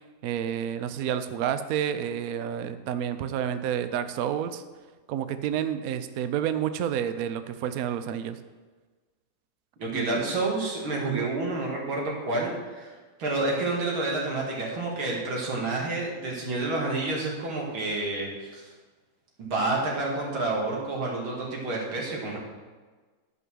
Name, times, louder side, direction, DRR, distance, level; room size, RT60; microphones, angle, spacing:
voice 1, 0.2-4.6 5.1-8.4 9.9-10.3 11.0-11.3, right 9 dB, 75° right, 10 dB, 0.8 m, -29 dB
voice 2, 9.8-12.9 13.2-18.7 19.4-22.4, right 2 dB, 90° right, -3 dB, 2.9 m, -29 dB
11.0 x 5.4 x 6.2 m, 1.4 s
omnidirectional pair, 2.2 m